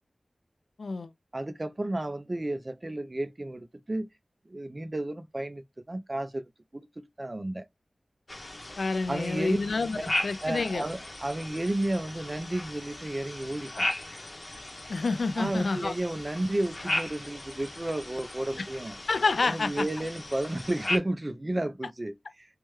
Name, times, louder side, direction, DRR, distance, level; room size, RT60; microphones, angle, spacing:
voice 1, 0.8-1.1 8.8-10.8 14.9-15.9 18.6-18.7 19.1-19.9, left 3 dB, 85° left, 0.3 m, -28 dB
voice 2, 1.3-4.1 4.5-6.4 6.7-7.6 9.1-9.6 10.0-10.1 10.4-13.9 15.4-19.0 19.4-22.5, right 1 dB, 35° right, 0.5 m, -32 dB
sound 1, 8.3-21.0, left 2 dB, 45° left, 0.8 m, -37 dB
3.3 x 2.2 x 3.0 m
wide cardioid pair, 50°, 0 cm